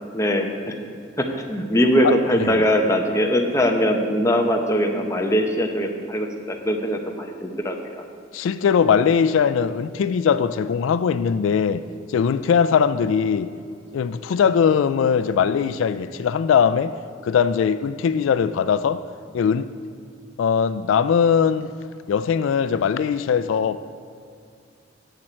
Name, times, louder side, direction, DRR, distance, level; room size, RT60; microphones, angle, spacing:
voice 1, 0.1-0.7 1.2-8.0, equal, 15° left, 2 dB, 0.8 m, -21 dB
voice 2, 8.3-13.5 13.9-16.9 17.2-19.0 19.3-19.7 20.4-21.7 22.1-23.9, left 7 dB, 80° left, 13 dB, 0.3 m, -20 dB
10.5 x 7.5 x 4.4 m, 2.4 s
head